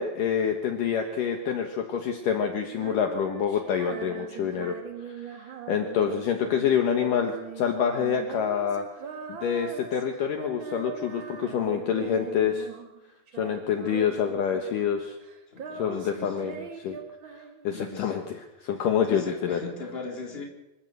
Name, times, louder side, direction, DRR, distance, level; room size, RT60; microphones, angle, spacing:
voice 1, 0.0-4.8 5.1-8.9 9.4-12.7 13.4-15.2 15.7-17.0 17.6-19.6, left 7 dB, 65° left, 4 dB, 2.7 m, -27 dB
Female singing, 2.7-13.0 13.3-14.9 15.2-17.9, right 6 dB, 45° right, 1.6 m, -41 dB
voice 2, 15.5-16.6 17.7-18.1 19.1-20.4, left 3 dB, 15° left, 0 dB, 3.8 m, -39 dB
25.5 x 13.5 x 8.0 m, 0.96 s
omnidirectional pair, 4.6 m